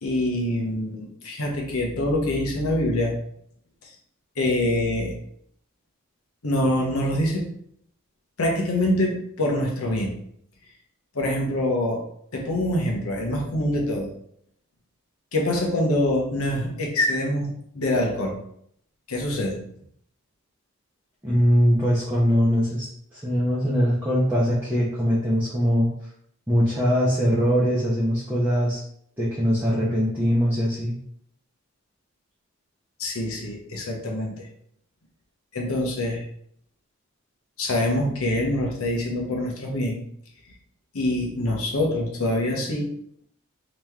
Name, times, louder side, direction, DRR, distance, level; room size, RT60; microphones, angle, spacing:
voice 1, 0.0-3.2 3.8-3.9 4.4-5.2 6.4-7.4 8.4-10.1 11.1-12.0 12.3-14.1 15.3-18.4 19.1-19.6 33.0-34.5 35.5-36.2 37.6-40.0 40.9-42.9, left 1 dB, 75° left, 0 dB, 0.9 m, -25 dB
voice 2, 21.2-25.9 26.5-28.8 29.2-31.0, equal, 10° right, -9 dB, 0.7 m, -22 dB
3.0 x 2.9 x 3.5 m, 0.67 s
head